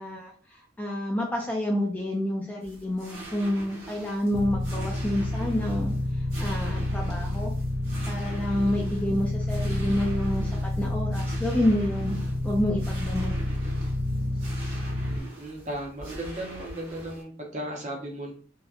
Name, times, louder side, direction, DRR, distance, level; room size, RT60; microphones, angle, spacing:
voice 1, 0.0-7.5 8.1-12.2 12.4-13.3, left 1 dB, 10° left, -2 dB, 0.3 m, -28 dB
sound 1, 2.6-17.2, right 1 dB, 80° right, 1.0 m, -44 dB
sound 2, 4.3-15.2, left 1 dB, 70° left, 0.5 m, -29 dB
voice 2, 15.0-18.3, right 1 dB, 40° right, 0 dB, 0.6 m, -36 dB
2.7 x 2.1 x 2.3 m, 0.43 s
head